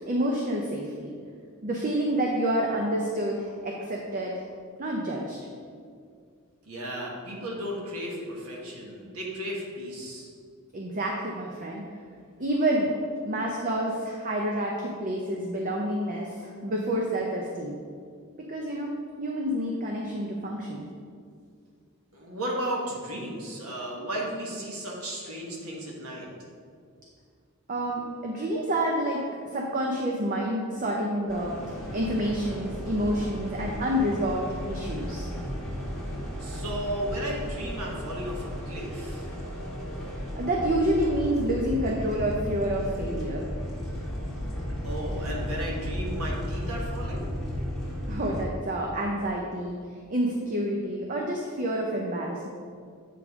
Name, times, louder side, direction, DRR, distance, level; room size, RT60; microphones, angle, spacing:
voice 1, 0.1-1.1 1.6-4.4 4.8-5.4 10.7-11.8 12.4-12.9 13.2-17.8 18.4-20.9 27.7-29.3 29.5-35.3 40.4-43.5 48.1-49.8 50.1-52.5, right 1 dB, 40° right, -1 dB, 0.6 m, -28 dB
voice 2, 6.6-10.3 22.1-26.3 36.4-39.3 44.8-47.2, right 1 dB, 80° right, -3 dB, 1.4 m, -34 dB
sound 1, 31.3-48.4, equal, ahead, 1.4 m, -34 dB
8.3 x 5.1 x 3.6 m, 2.2 s
head